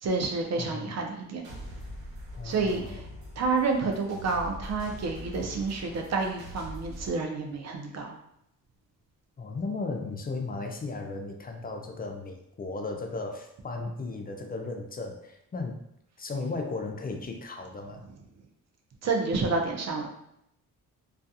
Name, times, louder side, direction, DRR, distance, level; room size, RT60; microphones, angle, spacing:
voice 1, 0.0-1.4 2.4-3.0 3.4-8.2 19.0-20.1, right 4 dB, 45° right, 2 dB, 0.6 m, -29 dB
voice 2, 0.6-1.1 2.4-3.0 9.4-15.8 16.2-18.0, left 3 dB, 25° left, 3 dB, 0.4 m, -35 dB
sound 1, 1.4-7.1, equal, 90° right, 0.8 m, -42 dB
2.3 x 2.3 x 2.6 m, 0.77 s
cardioid pair, 75°, 36 cm